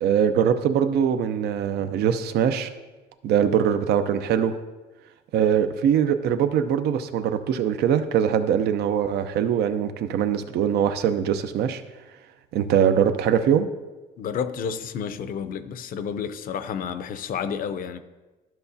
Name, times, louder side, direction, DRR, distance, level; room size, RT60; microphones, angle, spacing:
voice 1, 0.0-2.7 3.2-4.6 5.3-11.8 12.5-13.7, right 8 dB, 75° right, 0.7 m, -22 dB
voice 2, 14.2-18.0, left 7 dB, 55° left, 0.6 m, -30 dB
12.5 x 5.7 x 2.7 m
cardioid pair, 110°, 17 cm